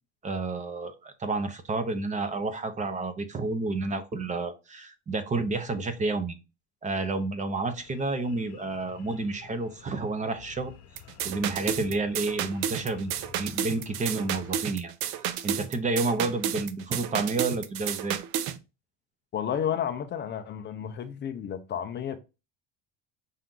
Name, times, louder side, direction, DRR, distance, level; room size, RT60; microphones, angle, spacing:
voice 1, 0.2-6.4 6.8-10.7 11.2-14.9 15.2-18.2, right 3 dB, 20° right, 0.7 m, -30 dB
sound 1, 7.6-14.6, left 8 dB, 55° left, 0.9 m, -50 dB
sound 2, 11.0-18.6, right 10 dB, 70° right, 0.6 m, -32 dB
voice 2, 19.3-22.2, left 9 dB, 35° left, 0.5 m, -31 dB
5.7 x 2.5 x 3.7 m
cardioid pair, 130°, 33 cm